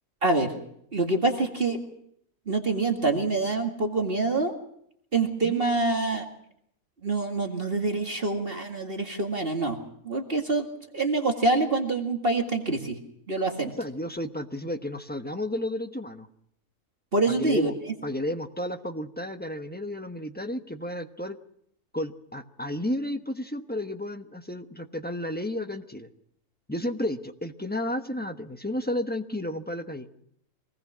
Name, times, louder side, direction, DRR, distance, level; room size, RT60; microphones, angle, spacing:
voice 1, 0.2-0.5 0.9-1.8 2.5-4.5 5.1-6.3 7.0-9.8 10.1-10.7 10.9-13.0 13.3-13.7 17.1-17.7, right 3 dB, 40° right, 2 dB, 2.2 m, -25 dB
voice 2, 13.8-16.3 17.3-17.7 18.0-21.4 21.9-26.1 26.7-30.1, left 1 dB, 10° left, 7 dB, 1.0 m, -32 dB
25.0 x 19.5 x 6.2 m, 0.71 s
omnidirectional pair, 1.5 m